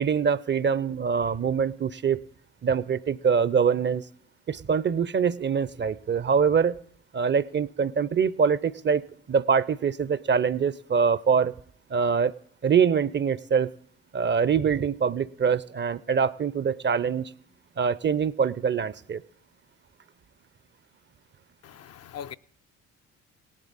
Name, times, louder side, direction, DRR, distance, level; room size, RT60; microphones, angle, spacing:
voice 1, 0.0-2.2 2.6-4.0 4.5-6.8 7.1-9.0 9.3-11.5 11.9-12.3 12.6-13.7 14.1-17.3 17.8-19.2, right 6 dB, 30° right, 0.6 m, -24 dB
voice 2, 21.6-22.3, left 9 dB, 45° left, 0.5 m, -40 dB
18.5 x 7.3 x 4.0 m
hypercardioid pair, 45°, 38 cm